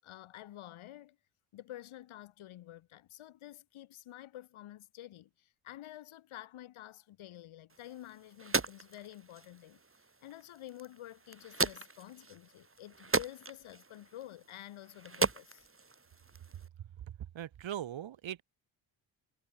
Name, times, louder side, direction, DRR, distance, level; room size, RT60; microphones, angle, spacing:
voice 1, 0.0-1.2 1.5-9.8 10.2-15.7, left 13 dB, 75° left, 7.5 m, -50 dB
sound 1, 7.7-16.7, right 3 dB, 25° right, 5.2 m, -38 dB
voice 2, 16.8-18.4, right 10 dB, 65° right, 6.2 m, -41 dB
supercardioid pair, 55°, 49 cm